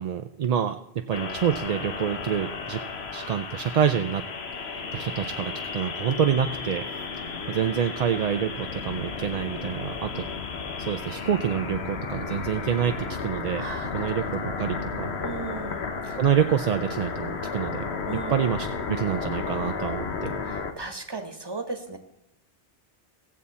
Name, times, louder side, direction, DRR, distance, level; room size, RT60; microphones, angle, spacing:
voice 1, 0.0-2.8 3.1-4.2 4.7-6.8 7.5-10.2 10.8-13.7 13.9-15.1 16.2-17.9 18.3-20.4, right 8 dB, 55° right, 7 dB, 0.5 m, -27 dB
sound 1, 1.1-20.7, left 5 dB, 90° left, 1.3 m, -33 dB
voice 2, 13.6-14.3 15.2-16.2 18.0-18.3 20.4-22.0, right 4 dB, 25° right, 5 dB, 1.3 m, -37 dB
17.5 x 7.3 x 4.2 m, 0.84 s
omnidirectional pair, 1.0 m